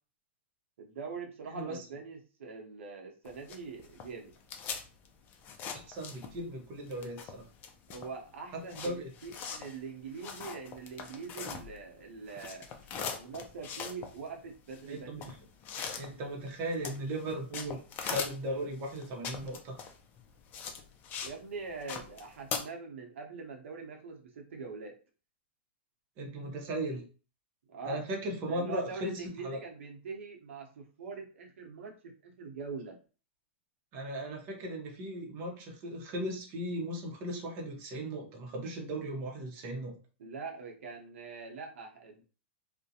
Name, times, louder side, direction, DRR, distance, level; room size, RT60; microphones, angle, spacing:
voice 1, 0.8-4.4 7.9-8.9 9.2-12.7 13.1-15.3 21.2-25.0 27.7-28.0 28.5-33.0 40.2-42.2, right 5 dB, 80° right, 2 dB, 0.7 m, -43 dB
voice 2, 1.5-1.8 5.7-7.4 8.5-9.1 14.9-15.3 16.0-19.8 26.2-27.1 27.8-29.6 33.9-40.0, right 1 dB, 35° right, 0 dB, 0.7 m, -37 dB
sound 1, 3.3-6.6 6.8-12.0 12.3-21.4 21.7-22.6, left 6 dB, 25° left, 0.4 m, -41 dB
2.4 x 2.1 x 2.7 m, 0.36 s
supercardioid pair, 150°, 7 cm